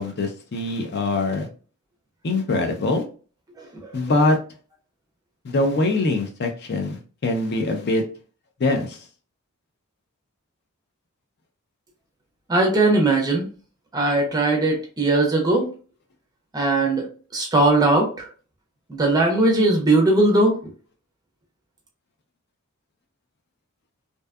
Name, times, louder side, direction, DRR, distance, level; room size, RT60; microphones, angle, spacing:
voice 1, 0.0-1.5 2.2-3.0 3.9-4.4 5.4-8.0 8.6-9.0, left 2 dB, 50° left, 4 dB, 0.4 m, -23 dB
voice 2, 12.5-13.5 13.9-15.7 16.5-17.1 17.3-18.3 18.9-20.6, right 2 dB, 15° right, 1 dB, 0.5 m, -19 dB
2.6 x 2.2 x 2.2 m, 0.39 s
head